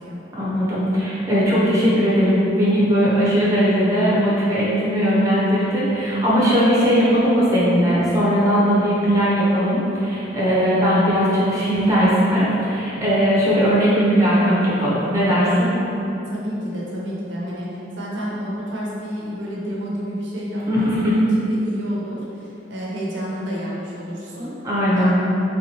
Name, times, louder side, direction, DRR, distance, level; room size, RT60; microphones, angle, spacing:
voice 1, 0.4-15.7 20.7-21.1 24.6-25.1, equal, 15° right, -8 dB, 0.7 m, -18 dB
voice 2, 16.0-17.7 18.0-24.5 24.9-25.1, equal, 70° right, -6 dB, 0.7 m, -29 dB
3.4 x 3.0 x 2.8 m, 2.9 s
head